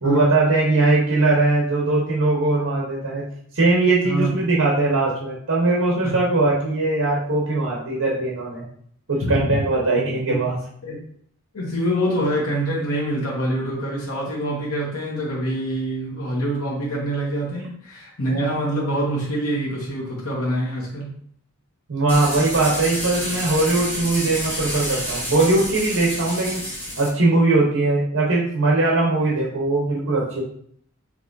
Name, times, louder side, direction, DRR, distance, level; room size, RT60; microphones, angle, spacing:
voice 1, 0.0-3.2 3.5-8.6 9.1-10.6 21.9-26.6 27.0-30.4, right 2 dB, 75° right, -4 dB, 0.9 m, -20 dB
voice 2, 11.5-21.1, right 1 dB, 85° left, -4 dB, 1.0 m, -25 dB
sound 1, 22.1-27.1, equal, 10° left, 1.0 m, -29 dB
4.7 x 3.0 x 2.6 m, 0.62 s
head